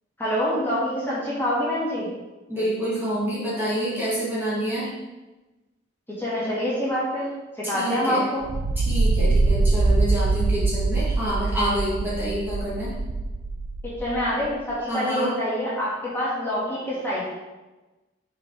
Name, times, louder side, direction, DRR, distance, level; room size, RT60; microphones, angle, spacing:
voice 1, 0.2-2.1 6.2-8.4 14.0-17.3, equal, 10° left, -8 dB, 2.0 m, -26 dB
voice 2, 2.5-5.0 7.6-8.2 8.8-13.0 14.8-15.3, equal, 10° right, -9 dB, 1.9 m, -27 dB
sound 1, 8.4-14.5, right 3 dB, 65° right, 0.4 m, -23 dB
5.5 x 5.3 x 4.7 m, 1.1 s
head